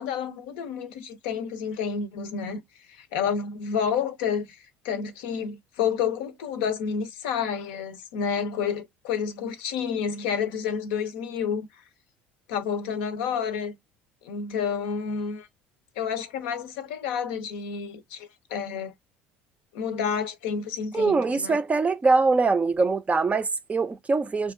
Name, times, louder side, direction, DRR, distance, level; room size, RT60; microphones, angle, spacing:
voice 1, 0.0-2.6 2.9-4.6 4.8-11.6 12.5-13.8 14.2-15.5 16.0-18.9 19.7-21.6, left 7 dB, 75° left, 0.5 m, -29 dB
voice 2, 20.9-24.5, right 4 dB, 25° right, 0.4 m, -23 dB
2.8 x 2.3 x 2.4 m
hypercardioid pair, 70°, 6 cm